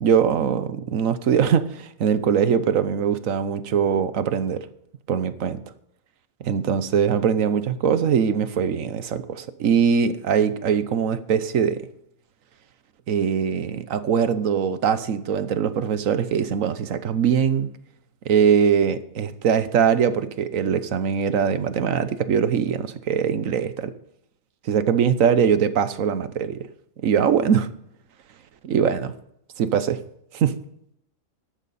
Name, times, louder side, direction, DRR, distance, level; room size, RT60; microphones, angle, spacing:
voice 1, 0.0-4.7 5.1-5.6 6.4-11.8 13.1-17.7 18.2-23.9 24.6-26.7 27.0-27.7 28.6-29.1 29.6-30.0 30.3-30.6, right 7 dB, 80° right, 1.3 m, -22 dB
13.5 x 11.5 x 4.2 m
omnidirectional pair, 1.4 m